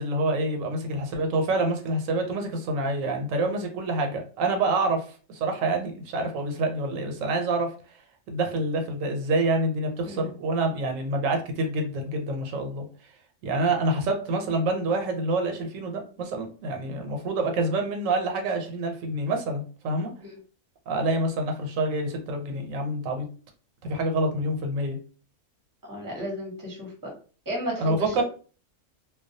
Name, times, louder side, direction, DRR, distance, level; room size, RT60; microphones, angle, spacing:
voice 1, 0.0-7.7 8.3-12.9 13.4-20.1 20.9-23.3 23.8-25.0 27.8-28.2, right 2 dB, 85° right, 3 dB, 1.0 m, -27 dB
voice 2, 10.0-10.3 20.2-20.4 25.9-27.1 27.5-28.2, equal, 20° right, -1 dB, 0.6 m, -34 dB
2.2 x 2.2 x 2.6 m, 0.39 s
omnidirectional pair, 1.3 m